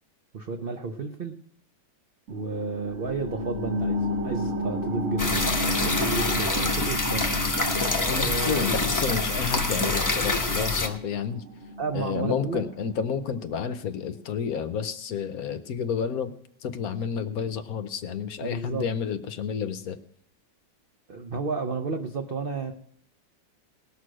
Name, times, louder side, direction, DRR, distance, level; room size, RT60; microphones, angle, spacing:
voice 1, 0.3-1.4 2.3-5.4 5.8-7.2 8.1-8.8 11.8-12.6 18.4-18.9 21.1-22.7, right 4 dB, 90° right, 6 dB, 0.5 m, -32 dB
sound 1, 2.3-13.4 13.8-13.9, left 1 dB, 45° right, 1.9 m, -33 dB
sound 2, 5.2-10.9, left 2 dB, 15° left, 0.7 m, -26 dB
voice 2, 8.1-11.4 11.9-16.3 16.6-20.0, left 6 dB, 65° left, 10 dB, 1.0 m, -30 dB
18.5 x 6.5 x 6.2 m, 0.65 s
omnidirectional pair, 2.0 m